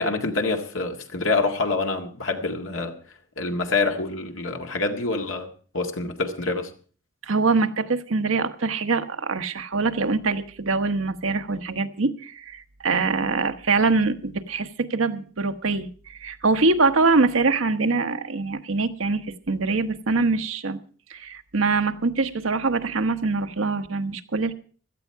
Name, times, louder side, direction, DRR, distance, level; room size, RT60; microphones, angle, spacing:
voice 1, 0.0-2.9 3.4-6.7, left 3 dB, 80° left, 1.9 m, -26 dB
voice 2, 7.2-20.8 21.1-24.5, right 3 dB, 85° right, 1.1 m, -24 dB
16.5 x 13.0 x 4.6 m
head